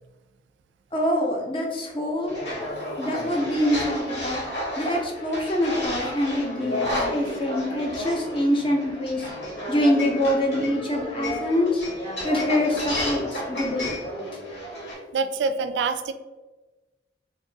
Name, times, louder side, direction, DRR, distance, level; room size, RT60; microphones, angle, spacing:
voice 1, 0.9-2.4 3.0-4.4 4.8-9.3 9.7-11.8 12.2-13.9, left 1 dB, 30° left, 1 dB, 0.6 m, -25 dB
sound 1, 2.3-14.9, left 1 dB, 80° left, 1.5 m, -32 dB
voice 2, 15.1-16.1, right 4 dB, 90° right, 10 dB, 0.3 m, -25 dB
2.8 x 2.6 x 3.9 m, 1.2 s
head